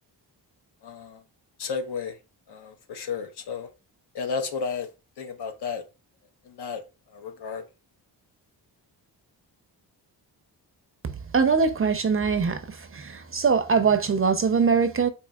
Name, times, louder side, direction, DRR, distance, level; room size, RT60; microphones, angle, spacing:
voice 1, 0.8-1.2 1.6-2.2 2.5-3.7 4.1-4.9 5.2-5.8 6.5-6.8 7.1-7.6, left 5 dB, 65° left, 0.9 m, -32 dB
voice 2, 11.3-12.6 12.9-15.1, right 5 dB, 30° right, 0.5 m, -22 dB
4.5 x 2.8 x 2.3 m
cardioid pair, 70°, 43 cm